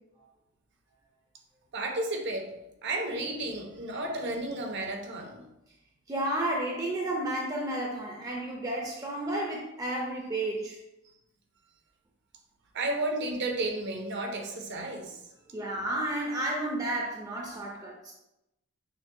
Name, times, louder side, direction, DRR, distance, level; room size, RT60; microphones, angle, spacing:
voice 1, 1.7-2.5 2.8-5.4 12.7-15.2, right 2 dB, 60° right, 3 dB, 0.7 m, -32 dB
voice 2, 6.1-10.8 15.5-18.1, right 1 dB, 20° right, -1 dB, 0.5 m, -32 dB
6.1 x 2.1 x 2.6 m, 0.90 s
head